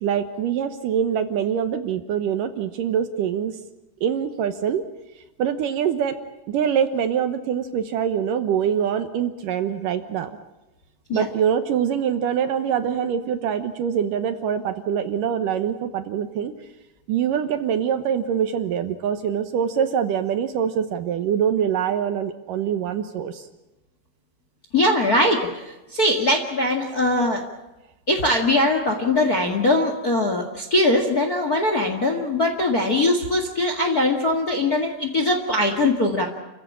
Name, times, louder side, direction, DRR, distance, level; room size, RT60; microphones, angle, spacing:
voice 1, 0.0-3.6 4.0-4.8 5.4-6.2 6.5-10.3 11.1-16.5 17.1-23.5, right 8 dB, 70° right, 9 dB, 2.4 m, -24 dB
voice 2, 24.7-27.4 28.1-36.3, left 1 dB, 35° left, 4 dB, 1.5 m, -21 dB
29.5 x 15.5 x 8.8 m, 1.0 s
omnidirectional pair, 4.5 m